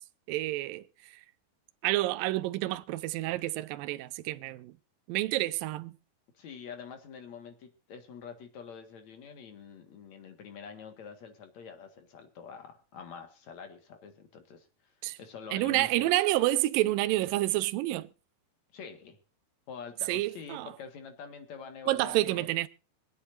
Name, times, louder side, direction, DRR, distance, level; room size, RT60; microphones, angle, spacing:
voice 1, 0.3-0.8 1.8-4.7 5.1-6.0 15.0-15.2 15.5-18.1 20.1-20.7 21.9-22.7, right 17 dB, 75° right, 2.2 m, -29 dB
voice 2, 6.3-14.9 15.2-16.1 18.7-19.2 19.7-22.5, left 6 dB, 50° left, 2.6 m, -46 dB
25.5 x 8.5 x 2.6 m
omnidirectional pair, 4.6 m